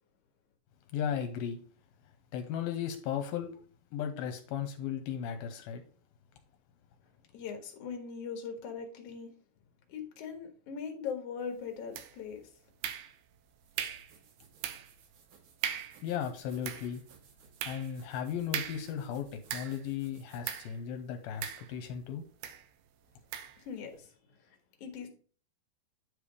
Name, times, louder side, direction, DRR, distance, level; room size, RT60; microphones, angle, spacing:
voice 1, 0.9-1.6 2.3-3.6 3.9-5.8 16.0-17.0 17.7-22.2, left 8 dB, 80° left, 2.5 m, -36 dB
voice 2, 7.3-9.3 9.9-12.5 23.6-25.1, left 6 dB, 55° left, 2.0 m, -41 dB
sound 1, 11.9-12.4 12.8-13.4 13.8-14.1 14.6-15.0 15.3-15.4 15.6-16.0 16.5-19.9 20.4-20.8 21.4-22.0 22.4-22.7 23.3-23.6, right 10 dB, 85° right, 2.6 m, -39 dB
sound 2, 13.5-21.8, right 6 dB, 65° right, 2.4 m, -62 dB
9.7 x 3.4 x 5.0 m
omnidirectional pair, 4.4 m